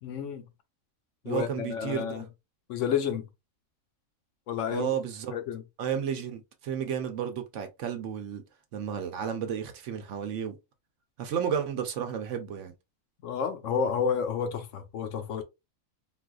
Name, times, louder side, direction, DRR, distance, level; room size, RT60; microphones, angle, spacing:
voice 1, 0.0-0.4 1.2-2.2 2.7-3.3 4.5-4.9 5.3-5.6 13.2-15.4, left 7 dB, 70° left, 0.9 m, -30 dB
voice 2, 1.3-2.3 4.7-5.4 5.8-8.4 8.7-10.6 11.2-12.7, right 8 dB, 65° right, 0.9 m, -32 dB
4.0 x 2.5 x 2.3 m
omnidirectional pair, 1.4 m